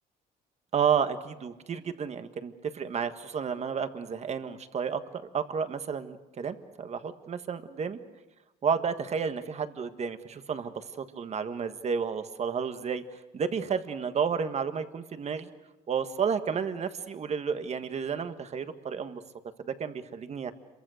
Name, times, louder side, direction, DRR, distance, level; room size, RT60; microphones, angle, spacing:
voice 1, 0.7-5.0 5.3-8.0 8.6-13.0 13.3-15.5 15.9-19.2 19.6-20.5, right 6 dB, 40° right, 9 dB, 1.6 m, -31 dB
27.0 x 23.5 x 6.5 m, 1.1 s
cardioid pair, 110°, 17 cm